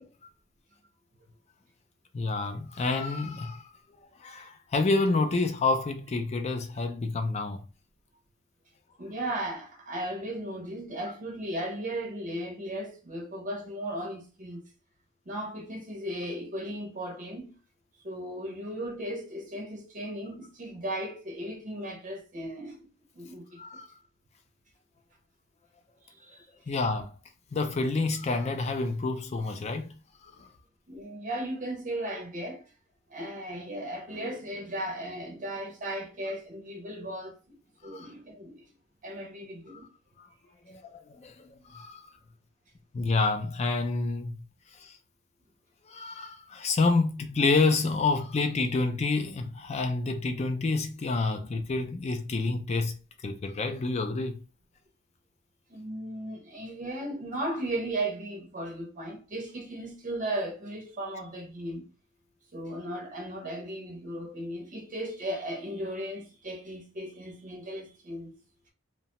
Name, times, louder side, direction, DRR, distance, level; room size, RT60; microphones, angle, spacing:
voice 1, 2.1-3.7 4.2-7.6 23.6-23.9 26.7-27.1 27.5-30.0 30.2-30.5 37.8-38.1 39.7-39.8 40.2-40.3 40.7-42.2 42.9-44.4 44.7-45.0 45.9-54.4, left 3 dB, 30° left, 0.4 m, -28 dB
voice 2, 9.0-14.6 15.3-17.5 18.0-22.9 23.1-23.8 26.1-26.5 30.9-32.7 33.1-37.6 37.8-38.7 39.0-39.8 55.7-61.9 62.5-68.4, right 1 dB, 40° right, 0.6 m, -36 dB
2.8 x 2.1 x 2.9 m
head